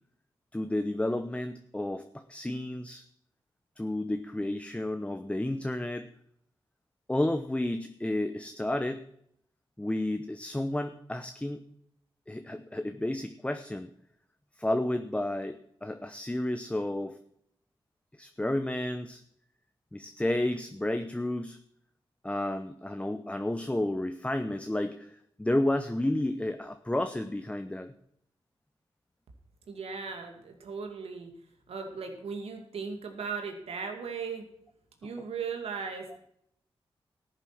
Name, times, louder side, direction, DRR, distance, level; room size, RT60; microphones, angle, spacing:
voice 1, 0.5-3.0 3.8-6.1 7.1-9.0 9.8-11.7 12.3-13.9 14.6-17.2 18.2-19.2 19.9-21.6 22.2-27.9 35.0-35.1, left 1 dB, 10° left, 8 dB, 0.8 m, -31 dB
voice 2, 29.7-31.3 31.7-34.4 35.0-36.2, right 5 dB, 90° right, 4 dB, 2.3 m, -37 dB
13.5 x 7.5 x 6.0 m, 0.70 s
cardioid pair, 55°, 10 cm